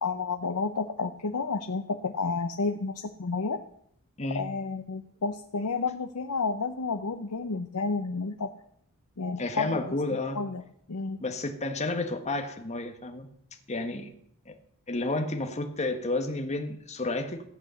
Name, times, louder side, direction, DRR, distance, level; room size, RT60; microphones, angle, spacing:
voice 1, 0.0-2.9 3.2-3.6 4.3-8.5 9.2-9.8 10.4-10.6 10.9-11.2, left 4 dB, 85° left, 7 dB, 0.8 m, -30 dB
voice 2, 9.4-10.4 11.2-13.3 13.7-14.1 14.4-14.6 14.9-17.4, left 2 dB, 30° left, 5 dB, 1.4 m, -31 dB
14.5 x 8.5 x 7.0 m, 0.68 s
head